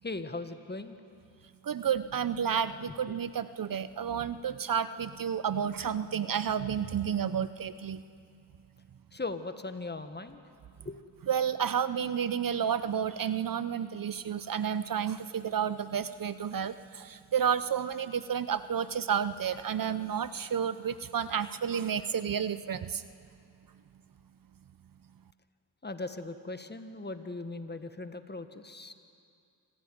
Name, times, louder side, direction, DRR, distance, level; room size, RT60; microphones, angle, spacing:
voice 1, 0.0-1.0 9.1-10.4 10.8-11.0 25.8-28.9, left 3 dB, 25° left, 9 dB, 1.7 m, -39 dB
voice 2, 1.6-8.0 11.3-23.0, right 8 dB, 50° right, 14 dB, 0.8 m, -31 dB
26.0 x 16.0 x 9.6 m, 2.4 s
cardioid pair, 60°, 44 cm